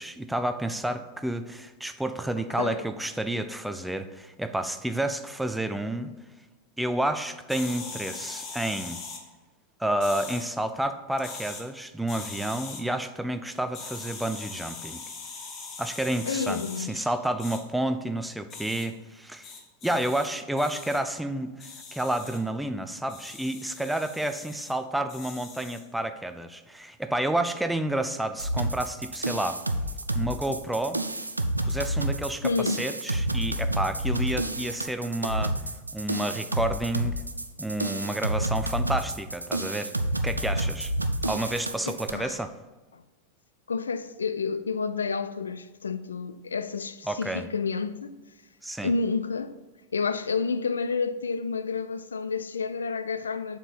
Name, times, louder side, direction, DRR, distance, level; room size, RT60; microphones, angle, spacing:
voice 1, 0.0-6.1 6.8-9.0 9.8-15.0 15.8-19.5 19.8-29.6 30.1-31.0 31.6-35.5 35.9-37.2 37.6-39.9 40.2-40.9 41.2-42.5 47.1-47.5 48.6-48.9, right 1 dB, 5° right, 0.4 m, -30 dB
sound 1, 7.5-9.2 10.0-10.5 11.2-11.6 12.1-12.8 13.7-16.9 17.4-17.6 18.5-18.9 19.4-20.3 20.6-21.0 21.6-22.4 23.1-24.7 25.1-25.8, left 4 dB, 35° left, 1.2 m, -41 dB
voice 2, 16.3-17.1 32.4-32.8 41.9-42.4 42.9-43.0 43.7-48.2 48.8-49.6 49.9-53.6, left 5 dB, 70° left, 0.4 m, -30 dB
sound 2, 28.4-42.1, right 1 dB, 85° right, 0.4 m, -29 dB
7.0 x 4.4 x 5.2 m
figure-of-eight pair, 90°, 0 cm